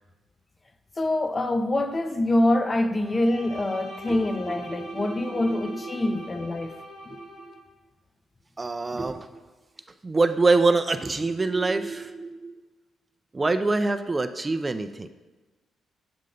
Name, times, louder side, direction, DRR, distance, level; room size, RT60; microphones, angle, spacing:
voice 1, 1.0-6.8 7.1-7.2 8.9-9.0, left 1 dB, 30° left, 0.5 m, -25 dB
Bowed string instrument, 3.0-7.6, left 1 dB, 80° left, 1.3 m, -43 dB
voice 2, 4.6-6.2 7.1-7.3 8.6-9.3 10.0-12.6 13.3-15.1, right 3 dB, 30° right, 0.4 m, -25 dB
7.6 x 2.7 x 5.2 m
hypercardioid pair, 40°, 0 cm